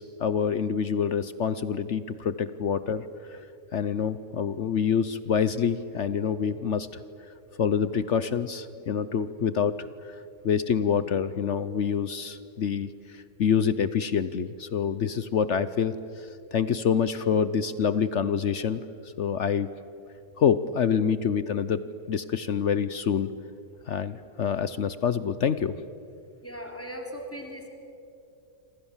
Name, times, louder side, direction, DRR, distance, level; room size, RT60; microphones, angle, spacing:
voice 1, 0.0-3.1 3.7-6.9 7.6-9.7 10.4-12.9 13.4-15.9 16.5-18.8 19.2-19.7 20.4-23.3 23.9-25.8, left 7 dB, 55° left, 14 dB, 0.9 m, -26 dB
voice 2, 26.4-27.7, equal, 10° left, 2 dB, 3.2 m, -38 dB
27.5 x 26.0 x 7.3 m, 2.7 s
omnidirectional pair, 1.7 m